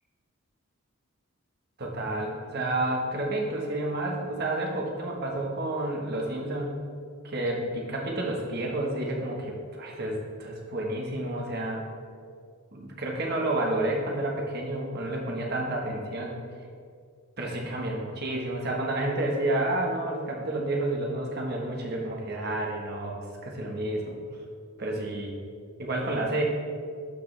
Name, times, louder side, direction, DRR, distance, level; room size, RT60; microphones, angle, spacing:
voice 1, 1.8-6.7 7.2-11.8 12.7-16.4 17.4-24.2 24.8-25.4 25.8-26.4, right 1 dB, 50° right, 0 dB, 1.3 m, -30 dB
12.0 x 4.9 x 3.3 m, 2.2 s
head